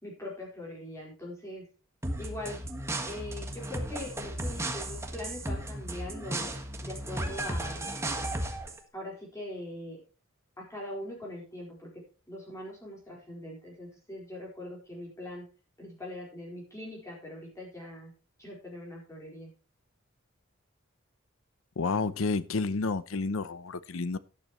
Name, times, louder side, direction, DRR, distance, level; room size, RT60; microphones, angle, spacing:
voice 1, 0.0-1.7 2.2-2.6 3.0-6.5 6.8-7.9 8.9-10.0 10.6-15.5 15.8-18.1 18.4-19.5, left 1 dB, 15° left, 4.4 m, -42 dB
sound 1, 2.0-8.8, right 1 dB, 15° right, 1.6 m, -35 dB
voice 2, 21.8-24.2, left 4 dB, 85° left, 0.7 m, -30 dB
12.0 x 12.0 x 3.1 m
head